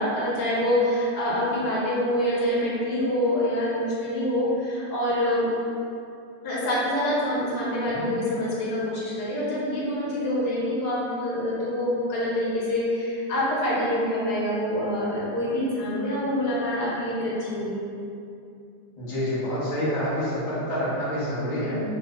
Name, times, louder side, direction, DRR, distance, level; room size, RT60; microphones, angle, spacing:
voice 1, 0.0-5.5 6.4-17.8 21.6-21.8, left 1 dB, 70° left, -7 dB, 1.3 m, -26 dB
voice 2, 19.0-21.8, equal, 40° left, -10 dB, 0.5 m, -27 dB
3.0 x 2.1 x 3.5 m, 2.5 s
omnidirectional pair, 1.8 m